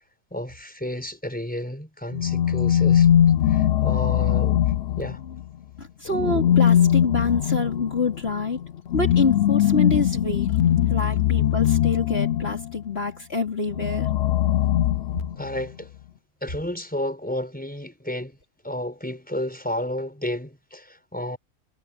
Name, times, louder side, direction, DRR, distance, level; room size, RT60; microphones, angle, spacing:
voice 1, 0.3-3.1 3.5-4.7 5.0-5.2 15.4-15.9 16.4-18.4 18.6-21.4, left 1 dB, 5° left, 5.3 m, -31 dB
sound 1, 2.1-5.4 6.1-12.7 13.7-15.6, left 10 dB, 65° left, 0.7 m, -21 dB
voice 2, 5.8-8.6 8.9-10.6 10.9-14.1, left 3 dB, 45° left, 3.8 m, -26 dB
omnidirectional pair, 1.4 m